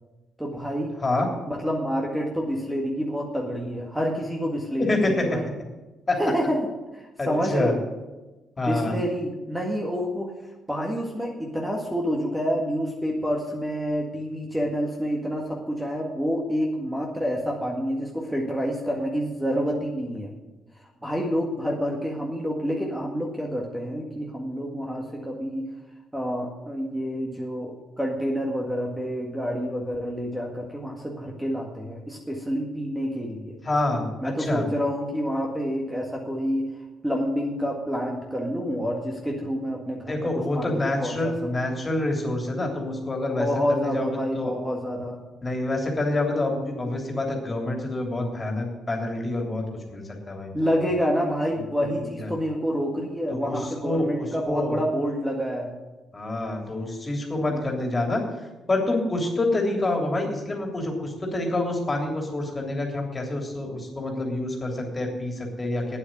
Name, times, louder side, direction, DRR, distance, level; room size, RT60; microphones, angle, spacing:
voice 1, 0.4-0.9 1.5-5.4 6.2-6.6 6.9-7.8 8.6-10.3 10.7-20.3 21.0-25.7 26.1-33.6 34.2-36.7 37.0-41.7 43.4-45.2 50.5-55.7 57.5-57.7, equal, 5° right, -1 dB, 1.9 m, -28 dB
voice 2, 4.8-5.2 6.1-6.2 7.2-7.7 8.6-9.0 33.6-34.6 40.1-44.5 45.4-49.6 49.9-50.8 52.2-52.3 53.3-53.5 53.8-54.8 56.1-58.2 58.7-66.0, left 2 dB, 25° left, 1 dB, 3.1 m, -27 dB
9.2 x 8.1 x 9.1 m, 1.1 s
cardioid pair, 90°, 0 cm